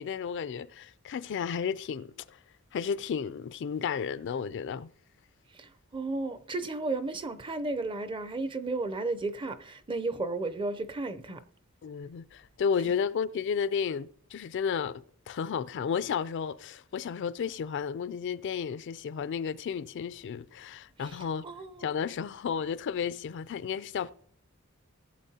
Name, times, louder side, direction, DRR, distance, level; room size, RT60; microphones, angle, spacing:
voice 1, 0.0-2.4 2.7-4.9 11.8-21.4 21.8-24.1, left 7 dB, 55° left, 0.3 m, -33 dB
voice 2, 5.6-11.4 21.4-22.1, right 3 dB, 20° right, 0.5 m, -33 dB
18.0 x 7.8 x 2.8 m
head